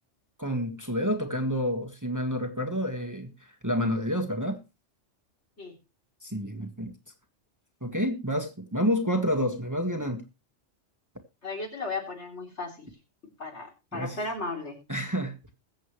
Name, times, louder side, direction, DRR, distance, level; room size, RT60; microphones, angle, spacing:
voice 1, 0.4-3.3 3.6-4.6 6.2-6.9 7.8-10.2 13.9-14.2 14.9-15.5, equal, 15° right, 1.5 m, -29 dB
voice 2, 11.4-12.9 13.4-14.8, left 3 dB, 65° left, 3.8 m, -35 dB
21.5 x 7.7 x 3.2 m
omnidirectional pair, 1.2 m